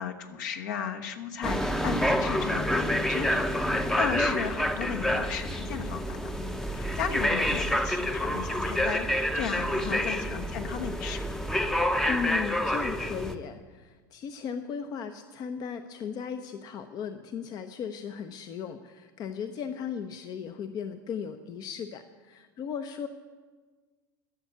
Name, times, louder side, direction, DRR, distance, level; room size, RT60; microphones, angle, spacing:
voice 1, 0.0-6.3 6.7-11.2, left 7 dB, 65° left, 5 dB, 1.2 m, -35 dB
sound 1, 1.4-13.3, equal, 5° left, 0.7 m, -28 dB
voice 2, 9.8-10.2 12.1-23.1, left 7 dB, 40° left, 9 dB, 0.7 m, -36 dB
12.5 x 7.1 x 8.4 m, 1.4 s
figure-of-eight pair, 85°, 11 cm